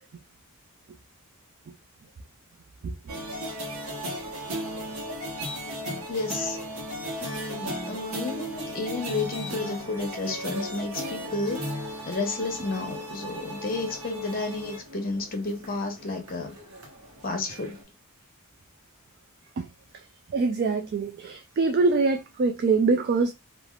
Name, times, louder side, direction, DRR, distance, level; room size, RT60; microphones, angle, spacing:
sound 1, 3.1-17.8, equal, 75° right, 1.0 m, -36 dB
voice 1, 6.1-6.6 7.2-11.7 12.1-16.6 17.2-17.8, left 3 dB, 40° left, 0.8 m, -31 dB
voice 2, 20.3-23.3, right 4 dB, 45° right, 0.3 m, -24 dB
3.3 x 2.4 x 2.3 m
head